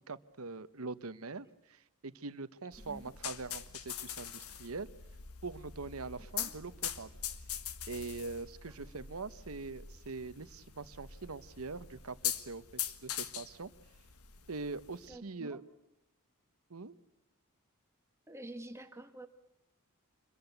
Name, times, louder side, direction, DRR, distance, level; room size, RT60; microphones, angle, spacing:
voice 1, 0.0-4.9 5.4-7.1 7.9-13.7 14.5-15.6 16.7-16.9, right 3 dB, 70° right, 14 dB, 1.0 m, -43 dB
sound 1, 2.7-15.1, left 10 dB, 80° left, 1.6 m, -43 dB
voice 2, 8.7-9.0 15.1-15.6 18.3-19.3, right 1 dB, 15° right, 7 dB, 1.2 m, -48 dB
26.5 x 22.5 x 8.0 m, 0.87 s
head